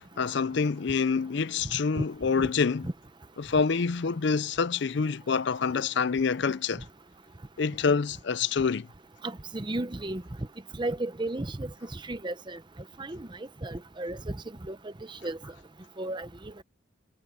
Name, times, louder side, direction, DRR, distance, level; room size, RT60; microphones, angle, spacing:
voice 1, 0.2-2.9 3.4-6.8 7.6-8.9, left 5 dB, 55° left, 0.5 m, -26 dB
voice 2, 9.2-10.2 10.8-11.7 12.1-12.6 13.0-13.3 13.6-14.4 14.7-15.4 16.0-16.5, right 2 dB, 20° right, 0.7 m, -34 dB
head